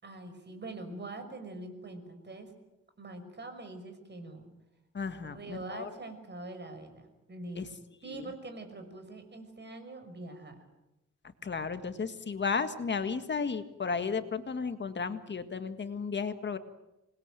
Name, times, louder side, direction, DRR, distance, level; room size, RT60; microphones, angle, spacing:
voice 1, 0.0-2.5 3.0-4.5 5.2-7.7 8.0-10.6, right 2 dB, 35° right, 7 dB, 5.9 m, -44 dB
voice 2, 4.9-5.9 7.5-7.7 8.1-8.3 11.4-16.6, left 5 dB, 35° left, 9 dB, 1.8 m, -34 dB
27.0 x 21.0 x 9.1 m, 0.96 s
cardioid pair, 125°, 31 cm